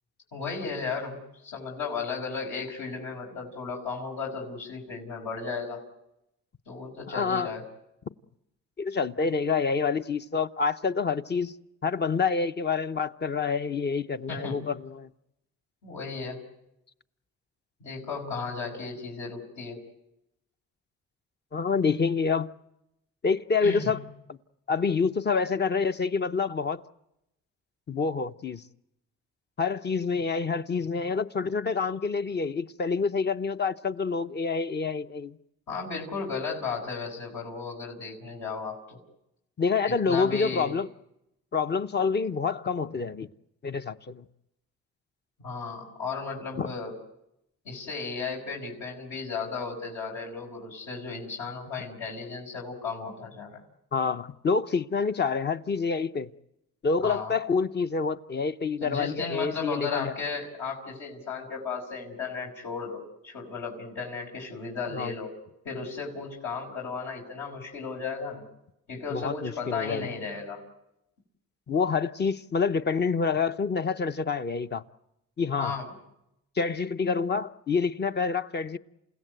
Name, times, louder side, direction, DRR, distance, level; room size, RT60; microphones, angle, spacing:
voice 1, 0.3-5.8 6.7-7.6 14.3-14.7 15.8-16.4 17.8-19.8 23.6-24.0 35.7-39.0 39.8-40.8 45.4-46.9 47.7-53.6 57.0-57.4 58.8-65.3 65.7-68.5 68.9-70.6 75.6-75.9, left 4 dB, 75° left, 5.3 m, -35 dB
voice 2, 7.1-7.5 8.8-11.5 11.8-15.1 21.5-22.5 23.2-24.0 24.3-24.4 24.7-26.8 27.9-28.6 29.6-35.4 39.6-40.9 41.5-43.3 43.6-44.2 46.6-46.7 53.9-56.3 56.8-60.1 64.9-65.1 69.1-70.1 71.7-74.8 75.4-75.8 76.6-78.8, left 5 dB, 35° left, 0.8 m, -27 dB
29.0 x 16.5 x 8.0 m
cardioid pair, 90°, 30 cm